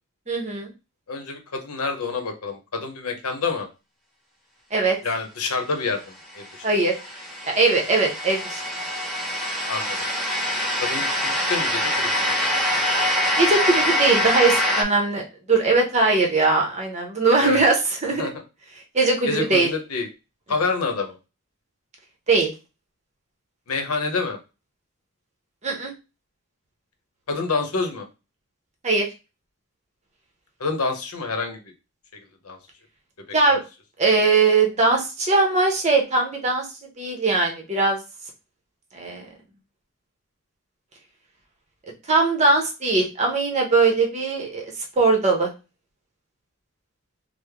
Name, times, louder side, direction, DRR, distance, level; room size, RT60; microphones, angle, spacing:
voice 1, 0.3-0.7 4.7-5.0 6.6-6.9 7.4-8.6 13.4-18.3 18.9-19.7 22.3-22.5 25.6-25.9 28.8-29.1 33.3-33.6 34.0-36.7 37.0-38.0 38.9-39.3 42.1-44.7 45.0-45.5, right 3 dB, 30° right, 1 dB, 0.8 m, -20 dB
voice 2, 1.1-3.7 5.0-6.6 9.7-10.1 10.8-12.4 17.4-17.6 18.0-18.3 19.3-20.1 20.5-21.2 23.7-24.4 27.3-28.1 30.6-31.7 32.4-32.6 33.5-33.6, left 4 dB, 85° left, 4 dB, 0.7 m, -28 dB
sound 1, 6.4-14.8, left 1 dB, ahead, 0.6 m, -24 dB
3.2 x 2.0 x 3.4 m, 0.28 s
head